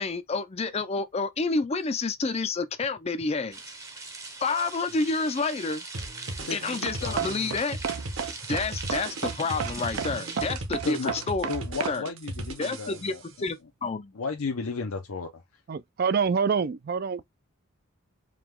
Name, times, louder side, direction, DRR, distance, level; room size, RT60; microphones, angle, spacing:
voice 1, 0.0-3.6 4.4-5.8 6.5-7.8 8.5-11.5 11.9-12.0 12.6-13.1 13.4-14.1, left 4 dB, 30° left, 0.4 m, -29 dB
sound 1, 3.5-10.5, right 3 dB, 15° right, 0.7 m, -41 dB
sound 2, 5.9-13.3, right 2 dB, 60° right, 1.1 m, -37 dB
voice 2, 6.4-7.3 10.8-11.2 11.5-13.2 14.1-15.4, left 4 dB, 75° left, 0.7 m, -34 dB
sound 3, 6.8-12.0, right 6 dB, 80° right, 0.6 m, -32 dB
voice 3, 15.7-17.2, right 6 dB, 45° right, 0.3 m, -26 dB
4.8 x 2.3 x 3.5 m
head